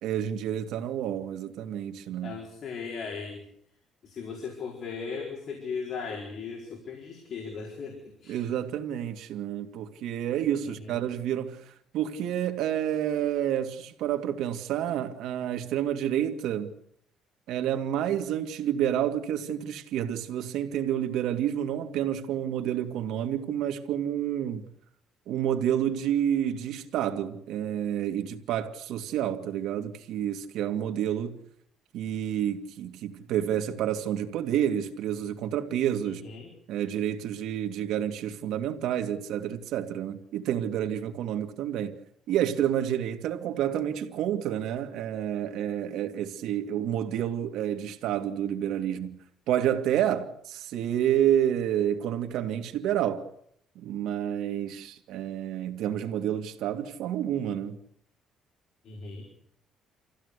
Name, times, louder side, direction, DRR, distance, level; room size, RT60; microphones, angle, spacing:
voice 1, 0.0-2.4 8.3-16.7 17.5-24.7 25.3-31.3 31.9-36.2 36.7-41.9 42.3-53.2 53.8-57.8, right 10 dB, 75° right, 2.5 m, -29 dB
voice 2, 2.2-3.4 4.0-8.4 10.6-11.0 36.0-36.5 58.8-59.3, left 5 dB, 45° left, 4.6 m, -37 dB
26.5 x 16.0 x 8.4 m
cardioid pair, 155°, 0 cm